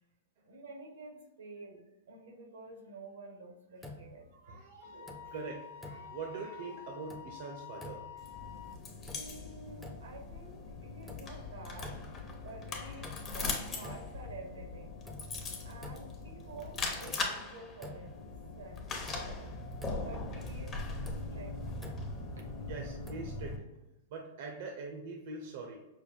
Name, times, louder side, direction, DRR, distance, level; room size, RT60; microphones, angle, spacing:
voice 1, 0.4-4.6 4.8-5.4 9.1-12.0 12.4-15.0 15.2-18.2 18.5-19.5 20.0-20.8 21.3-21.5 22.4-22.5, right 3 dB, 90° right, 3 dB, 1.1 m, -50 dB
sound 1, 3.8-4.5 4.9-5.5 5.8-6.5 6.9-7.5 7.7-8.4 8.8-9.5 9.8-10.4 10.8-11.5 11.8-12.4 12.8-13.5 13.8-14.4 14.8-16.3 16.7-16.8 17.1-18.3 18.6-18.7 19.1-20.3 20.8-22.3 23.1-23.5, left 1 dB, ahead, 0.6 m, -50 dB
voice 2, 4.3-5.0 5.3-8.1 13.4-13.5 15.7-15.8 22.7-23.6 24.1-25.8, right 3 dB, 60° right, 2 dB, 0.7 m, -43 dB
Wind instrument woodwind instrument, 4.8-8.8, left 9 dB, 70° left, 0.5 m, -49 dB
sound 2, 8.2-23.6, left 3 dB, 25° left, 0.8 m, -40 dB
5.6 x 2.2 x 3.4 m, 0.98 s
hypercardioid pair, 125°, 0 cm